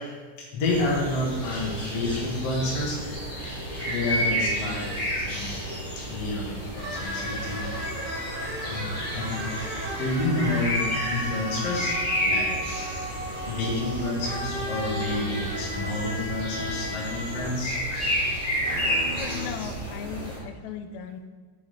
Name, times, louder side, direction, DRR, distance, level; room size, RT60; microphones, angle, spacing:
voice 1, 0.0-3.4 3.9-5.7 6.1-7.9 8.3-12.7 13.5-17.8, left 2 dB, 55° left, -4 dB, 2.4 m, -30 dB
sound 1, 0.6-20.4, equal, 25° left, 2.0 m, -31 dB
sound 2, 6.8-17.9 18.4-19.5, equal, 55° right, 0.5 m, -35 dB
voice 2, 19.1-21.2, left 8 dB, 80° left, 7 dB, 1.8 m, -37 dB
6.9 x 6.8 x 4.0 m, 1.5 s
omnidirectional pair, 3.6 m